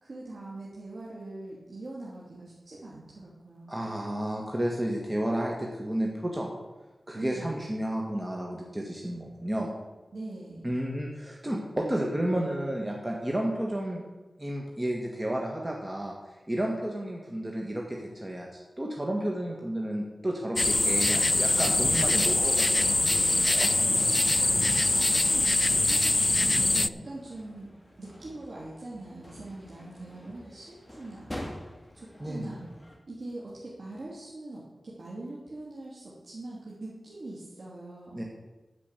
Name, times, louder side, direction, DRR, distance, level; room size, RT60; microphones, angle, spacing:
voice 1, 0.0-3.7 7.1-7.6 10.1-10.7 24.4-26.7 27.0-27.7 28.0-31.3 31.9-32.7 33.1-38.2, right 2 dB, 70° right, -6 dB, 2.9 m, -42 dB
voice 2, 3.7-6.5 7.1-9.7 10.6-14.0 14.4-16.1 16.5-23.7 26.7-27.0 32.2-32.5 38.1-38.2, right 1 dB, 20° right, -1 dB, 1.8 m, -32 dB
sound 1, 20.6-26.9, left 2 dB, 35° left, 0.3 m, -23 dB
sound 2, 27.0-33.0, left 1 dB, 15° left, 2.2 m, -46 dB
12.0 x 5.4 x 8.3 m, 1.1 s
wide cardioid pair, 65°, 0 cm